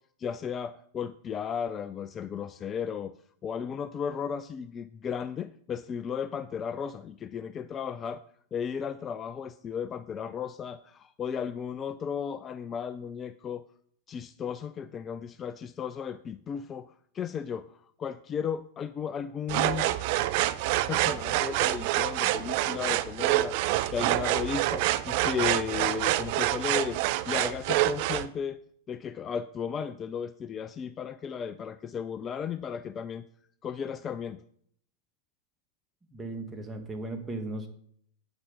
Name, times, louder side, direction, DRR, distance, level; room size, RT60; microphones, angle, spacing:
voice 1, 0.2-3.1 3.4-8.2 8.5-13.7 14.1-19.9 20.9-27.0 27.3-28.6 28.9-33.3 33.6-34.4, left 7 dB, 25° left, 14 dB, 0.4 m, -35 dB
sound 1, 19.5-28.3, right 15 dB, 45° right, 0.5 m, -27 dB
voice 2, 36.1-37.7, right 2 dB, 15° right, 4 dB, 1.7 m, -36 dB
9.0 x 8.0 x 5.3 m, 0.63 s
figure-of-eight pair, 90°, 0 cm